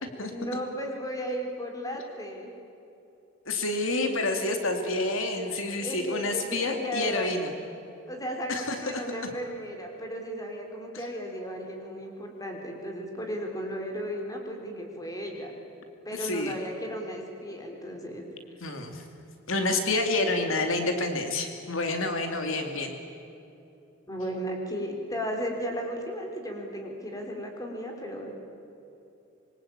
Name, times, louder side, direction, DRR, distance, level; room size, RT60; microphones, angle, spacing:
voice 1, 0.2-2.5 4.4-4.7 5.5-7.5 8.1-15.5 16.1-18.2 24.1-28.3, equal, 15° left, 2 dB, 4.3 m, -35 dB
voice 2, 3.5-7.5 8.5-9.0 16.1-16.5 18.6-19.0 19.5-22.9, left 2 dB, 70° left, 5 dB, 2.5 m, -28 dB
26.0 x 23.5 x 8.8 m, 2.8 s
head